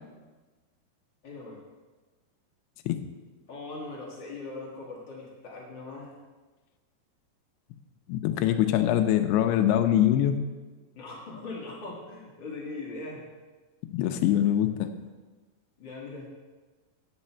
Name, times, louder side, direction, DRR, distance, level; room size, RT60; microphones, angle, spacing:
voice 1, 1.2-1.6 3.5-6.1 10.9-13.3 15.8-16.3, left 3 dB, 65° left, -4 dB, 1.1 m, -40 dB
voice 2, 8.1-10.4 13.9-14.9, left 11 dB, 85° left, 7 dB, 2.7 m, -23 dB
9.7 x 8.1 x 4.3 m, 1.3 s
omnidirectional pair, 4.7 m